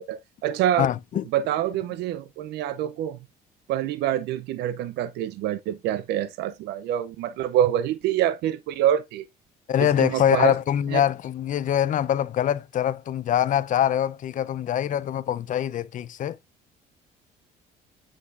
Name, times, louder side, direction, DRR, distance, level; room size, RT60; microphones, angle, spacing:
voice 1, 0.0-0.9 1.3-3.2 3.7-9.3 9.8-10.5 10.9-11.0, right 11 dB, 80° right, 0.6 m, -26 dB
voice 2, 0.8-1.2 9.7-16.4, left 10 dB, 50° left, 0.6 m, -24 dB
7.9 x 5.9 x 2.5 m
cardioid pair, 110°, 17 cm